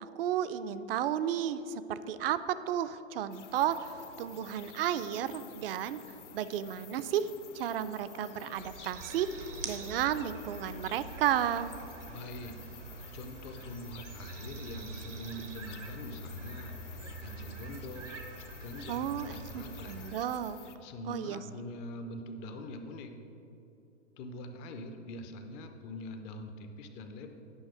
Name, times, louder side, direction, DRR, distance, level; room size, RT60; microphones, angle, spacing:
voice 1, 0.2-3.9 4.2-6.0 6.3-7.3 7.5-9.3 9.6-11.7 18.9-20.6 21.1-21.4, right 10 dB, 50° right, 13 dB, 0.5 m, -33 dB
sound 1, 3.3-20.8, left 8 dB, 70° left, 0.7 m, -52 dB
sound 2, 8.5-20.1, right 3 dB, 80° right, 1.2 m, -45 dB
voice 2, 12.1-12.6 13.1-16.8 17.2-18.1 18.5-20.1 20.8-23.2 24.2-27.3, left 1 dB, 20° left, 7 dB, 0.3 m, -44 dB
9.2 x 5.7 x 4.9 m, 3.0 s
figure-of-eight pair, 110°, 36 cm